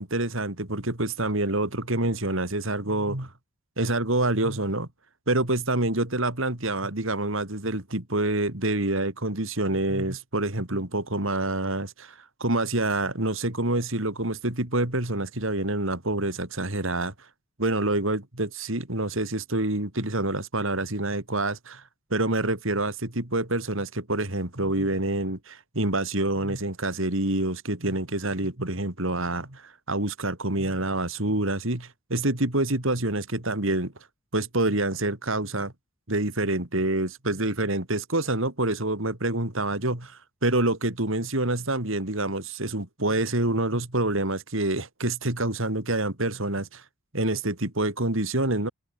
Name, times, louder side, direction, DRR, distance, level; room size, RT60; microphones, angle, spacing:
voice 1, 0.0-3.3 3.8-4.9 5.3-17.1 17.6-21.8 22.1-33.9 34.3-35.7 36.1-46.8 47.1-48.7, right 2 dB, 65° right, 3.4 m, -27 dB
open air
head